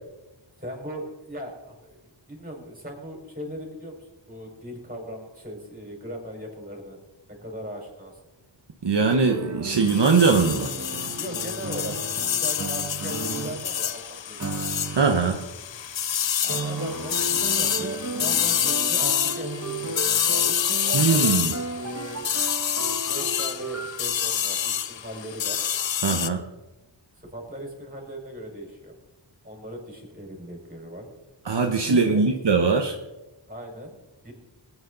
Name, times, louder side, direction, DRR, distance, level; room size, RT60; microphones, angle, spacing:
voice 1, 0.6-7.0 7.3-8.2 11.2-12.0 12.3-14.6 16.4-20.6 20.8-22.3 22.8-25.6 27.2-28.9 29.4-31.1 31.8-32.3 33.5-34.0 34.2-34.3, equal, 20° right, 0 dB, 4.8 m, -38 dB
voice 2, 8.8-10.7 14.9-15.4 20.9-21.5 26.0-26.4 31.4-32.9, right 4 dB, 65° right, 3 dB, 1.1 m, -21 dB
sound 1, 9.2-13.8 14.4-15.6 16.5-24.0, right 3 dB, 40° right, 1.1 m, -34 dB
sound 2, 9.8-26.3, left 9 dB, 75° left, 0.7 m, -27 dB
20.0 x 9.5 x 3.9 m, 1.1 s
wide cardioid pair, 65°, 45 cm